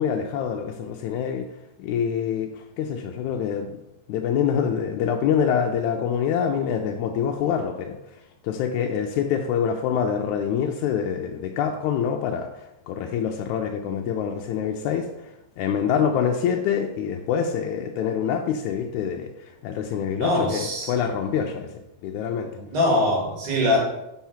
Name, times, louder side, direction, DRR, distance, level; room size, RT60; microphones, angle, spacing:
voice 1, 0.0-1.5 1.8-3.7 4.1-8.0 8.4-12.5 12.9-15.1 15.6-21.7 22.0-22.5, left 7 dB, 80° left, 3 dB, 1.8 m, -25 dB
voice 2, 20.2-20.9 22.6-23.8, left 1 dB, 65° right, -2 dB, 3.1 m, -22 dB
5.9 x 5.5 x 5.7 m, 0.91 s
omnidirectional pair, 3.8 m